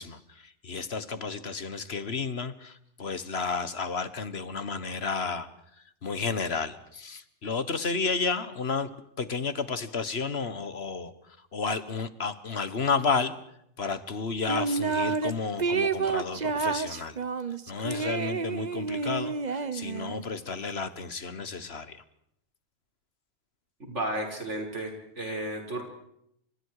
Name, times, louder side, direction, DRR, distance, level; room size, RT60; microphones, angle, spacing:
voice 1, 0.0-5.5 6.0-8.9 9.2-11.1 11.5-13.4 13.8-17.2 17.7-22.0, left 4 dB, 60° left, 14 dB, 1.7 m, -32 dB
sound 1, 14.5-15.3 15.6-20.2, right 4 dB, 40° right, 1.1 m, -29 dB
voice 2, 23.9-25.8, right 1 dB, 90° right, 2 dB, 6.3 m, -33 dB
29.0 x 27.0 x 4.9 m, 0.75 s
omnidirectional pair, 1.2 m